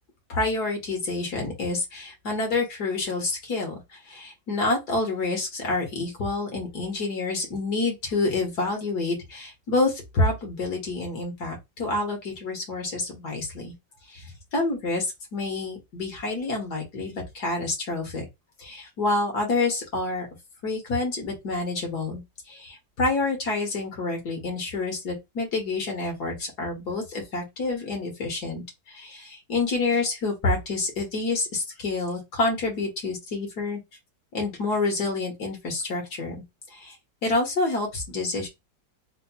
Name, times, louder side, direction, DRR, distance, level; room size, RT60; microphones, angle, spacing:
voice 1, 0.3-3.8 4.1-13.7 14.1-18.3 18.6-20.3 20.6-33.8 34.3-36.4 36.7-37.0 37.2-38.5, left 3 dB, 60° left, 2.0 m, -28 dB
4.0 x 2.9 x 2.3 m
omnidirectional pair, 2.0 m